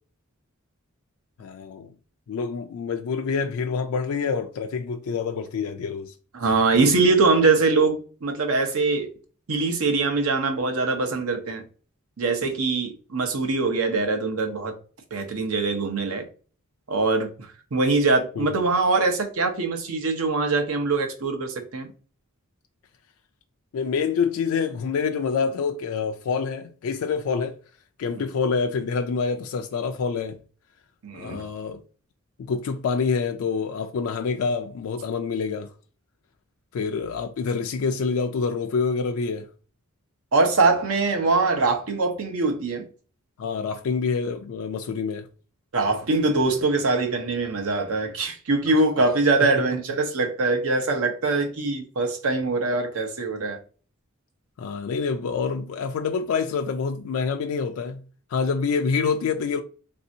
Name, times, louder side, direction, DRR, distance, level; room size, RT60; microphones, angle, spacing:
voice 1, 1.4-1.9 2.3-6.1 18.4-18.6 23.7-27.6 28.0-30.4 31.1-31.8 32.4-35.7 36.7-39.5 43.4-45.3 48.7-48.8 49.4-49.5 54.6-58.0 58.3-59.6, left 5 dB, 80° left, 0.3 m, -27 dB
voice 2, 6.3-9.1 9.5-11.6 12.2-14.7 15.1-16.2 16.9-21.9 31.0-31.5 40.3-42.8 45.7-53.6, right 3 dB, 85° right, 0.8 m, -23 dB
3.3 x 2.7 x 2.6 m
head